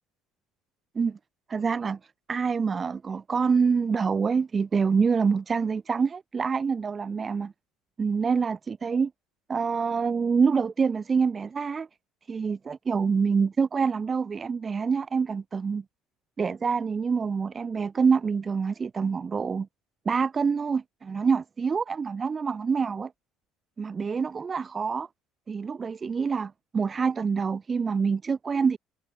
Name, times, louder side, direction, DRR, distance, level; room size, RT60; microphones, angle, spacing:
voice 1, 1.5-2.0 2.3-7.5 8.0-9.1 9.5-11.9 12.3-15.8 16.4-19.7 20.0-23.1 23.8-25.1 25.5-28.8, right 5 dB, 35° right, 1.0 m, -26 dB
hypercardioid pair, 70°, 0 cm